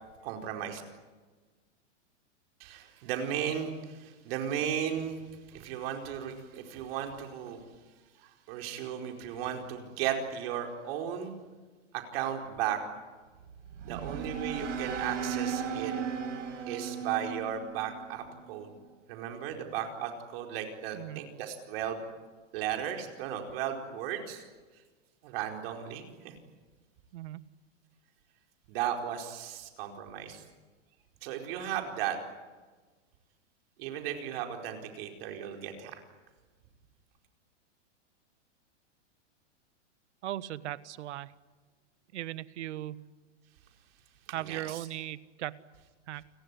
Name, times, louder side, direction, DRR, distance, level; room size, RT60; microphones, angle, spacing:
voice 1, 0.2-0.8 2.6-5.2 5.5-7.6 8.2-11.3 11.9-12.8 13.8-15.9 16.7-18.7 19.1-22.1 22.5-24.4 25.2-26.4 28.7-30.4 31.2-32.2 33.8-36.0 44.3-44.9, right 9 dB, 50° right, 3 dB, 4.7 m, -35 dB
sound 1, 13.3-18.6, right 7 dB, 90° right, 6.3 m, -36 dB
voice 2, 13.8-14.2 20.9-21.2 27.1-27.5 40.2-41.3 42.1-43.1 44.3-45.6 46.1-46.2, right 14 dB, 70° right, 16 dB, 1.4 m, -38 dB
30.0 x 18.5 x 9.9 m, 1.3 s
hypercardioid pair, 145°, 36 cm